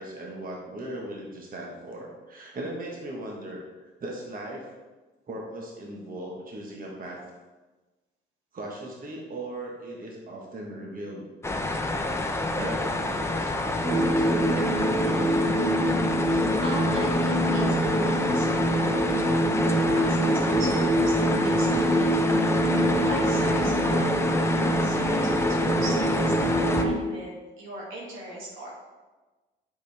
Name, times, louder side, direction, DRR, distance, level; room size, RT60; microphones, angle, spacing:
voice 1, 0.0-4.7 5.3-7.2 8.5-11.3 12.5-15.7, right 1 dB, 45° right, -1 dB, 1.5 m, -38 dB
sound 1, 11.4-26.8, left 2 dB, 15° left, 0.8 m, -28 dB
sound 2, 13.8-26.9, right 1 dB, 5° right, 2.4 m, -24 dB
voice 2, 16.2-19.1 19.7-28.7, right 1 dB, 90° right, -4 dB, 2.4 m, -39 dB
8.2 x 6.2 x 3.5 m, 1.2 s
cardioid pair, 90°, 20 cm